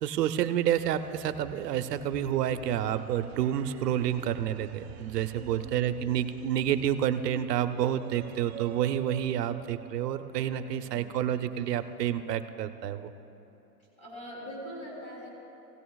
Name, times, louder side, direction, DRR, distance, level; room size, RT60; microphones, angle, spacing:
voice 1, 0.0-13.1, right 10 dB, 85° right, 10 dB, 0.8 m, -29 dB
sound 1, 0.6-12.2, right 11 dB, 45° right, 0.4 m, -49 dB
voice 2, 5.3-5.7 10.5-11.0 14.0-15.3, equal, 15° left, -5 dB, 3.2 m, -42 dB
17.0 x 16.5 x 2.4 m, 3.0 s
supercardioid pair, 170°, 47 cm